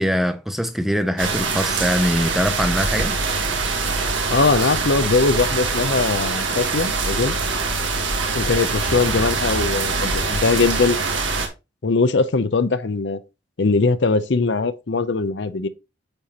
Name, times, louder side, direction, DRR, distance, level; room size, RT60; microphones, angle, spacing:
voice 1, 0.0-3.2, equal, ahead, 0.5 m, -22 dB
sound 1, 1.2-11.5, right 4 dB, 80° right, 1.6 m, -23 dB
voice 2, 4.3-7.3 8.3-11.0 11.8-13.2 13.6-15.7, left 4 dB, 65° left, 0.6 m, -20 dB
8.8 x 4.4 x 2.9 m
head